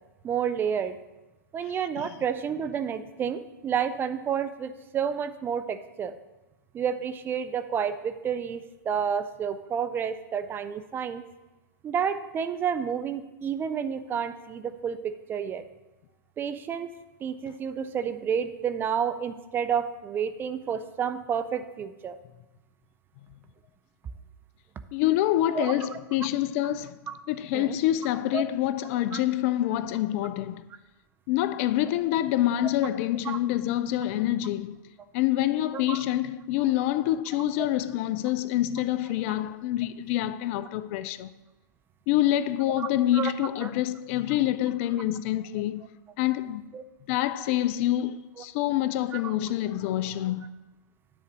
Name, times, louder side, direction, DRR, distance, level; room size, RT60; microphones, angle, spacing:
voice 1, 0.2-1.0 1.5-6.2 6.7-11.2 11.8-15.6 16.4-16.9 17.2-22.2 25.5-25.9 27.1-27.2 27.5-27.8 28.3-28.4 29.1-29.2 33.3-33.4 35.7-36.0 42.8-42.9 43.1-43.3 43.6-43.7 46.7-46.8 49.1-49.2, right 7 dB, 20° right, 0.5 m, -30 dB
voice 2, 24.9-27.0 27.3-30.6 31.3-34.8 35.1-41.3 42.1-45.8 46.2-46.6 47.1-50.5, left 13 dB, 45° left, 0.4 m, -26 dB
9.9 x 4.0 x 7.3 m
hypercardioid pair, 110°, 10 cm